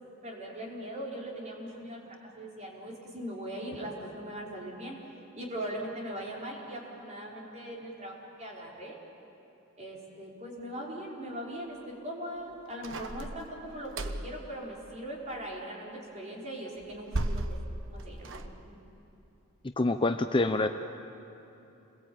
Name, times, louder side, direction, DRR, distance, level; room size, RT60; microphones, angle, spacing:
voice 1, 0.2-5.0 5.3-9.0 9.8-17.6 17.9-18.7, right 1 dB, 35° right, -3 dB, 5.1 m, -40 dB
sound 1, 12.8-14.4 16.8-18.5, right 1 dB, 65° right, 1.2 m, -35 dB
voice 2, 19.8-20.7, left 2 dB, 25° left, 7 dB, 0.7 m, -26 dB
28.5 x 21.5 x 8.8 m, 2.9 s
head